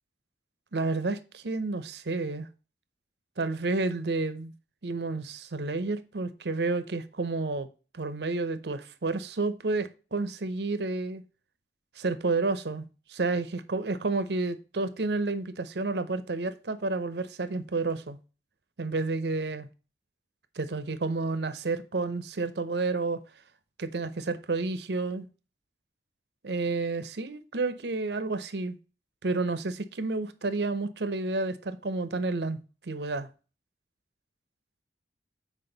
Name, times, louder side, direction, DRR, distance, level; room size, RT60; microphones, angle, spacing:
voice 1, 0.7-2.5 3.4-4.5 4.8-7.7 7.9-11.2 12.0-18.2 18.8-19.7 20.6-23.2 23.8-25.3 26.4-28.8 29.2-33.3, right 3 dB, 75° right, 0.7 m, -30 dB
7.8 x 4.7 x 4.0 m
head